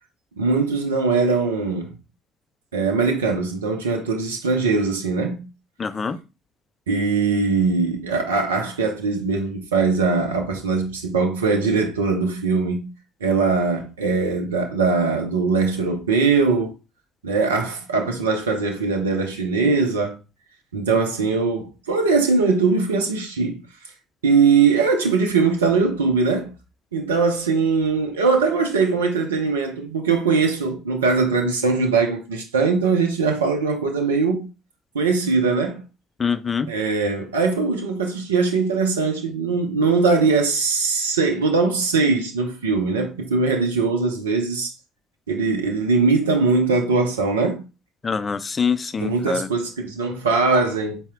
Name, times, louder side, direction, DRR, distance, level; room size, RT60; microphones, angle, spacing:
voice 1, 0.4-1.9 2.7-5.5 6.9-12.9 13.2-16.7 17.2-20.2 20.7-23.6 24.2-26.5 26.9-34.5 34.9-35.8 36.7-44.7 45.3-47.6 49.0-51.0, right 4 dB, 80° right, 0.5 m, -21 dB
voice 2, 5.8-6.2 36.2-36.7 48.0-49.5, left 6 dB, 30° left, 0.4 m, -24 dB
4.1 x 2.0 x 3.6 m
figure-of-eight pair, 55°, 0 cm